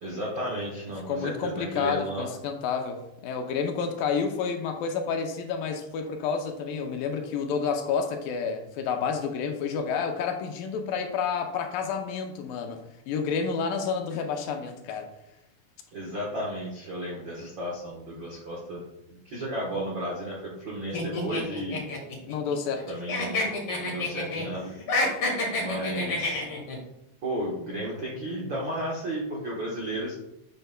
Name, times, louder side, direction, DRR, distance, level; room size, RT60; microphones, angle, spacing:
voice 1, 0.0-2.3 15.9-18.8 19.1-21.8 22.9-23.4 23.8-24.7 25.5-26.4 27.2-30.1, right 1 dB, 70° right, -4 dB, 1.1 m, -33 dB
voice 2, 1.1-15.1 22.3-22.9, left 6 dB, 80° left, 4 dB, 2.3 m, -30 dB
sound 1, 20.9-22.8 23.1-24.5 24.8-26.8, left 2 dB, 45° left, 2.1 m, -28 dB
7.8 x 7.7 x 2.2 m, 0.84 s
omnidirectional pair, 4.2 m